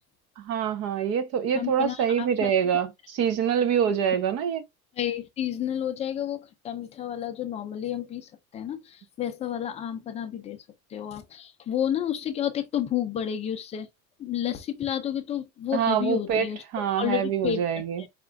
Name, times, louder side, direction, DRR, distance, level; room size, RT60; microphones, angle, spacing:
voice 1, 0.4-4.6 15.7-16.5 16.7-18.0, right 8 dB, 35° right, 0.7 m, -25 dB
voice 2, 1.5-2.5 5.0-10.6 10.9-13.9 14.2-16.6 17.0-18.1, left 10 dB, 15° left, 0.4 m, -31 dB
5.1 x 2.4 x 3.3 m
cardioid pair, 160°, 42 cm